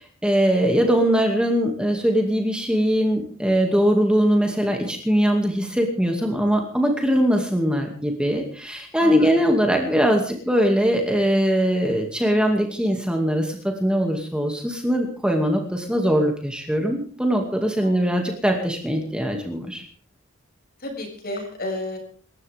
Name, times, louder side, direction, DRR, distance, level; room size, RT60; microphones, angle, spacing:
voice 1, 0.2-19.9, equal, 5° right, 2 dB, 2.4 m, -21 dB
voice 2, 9.0-9.3 17.8-18.1 20.8-22.0, left 2 dB, 50° left, 3 dB, 6.7 m, -32 dB
26.5 x 14.0 x 3.6 m, 0.44 s
head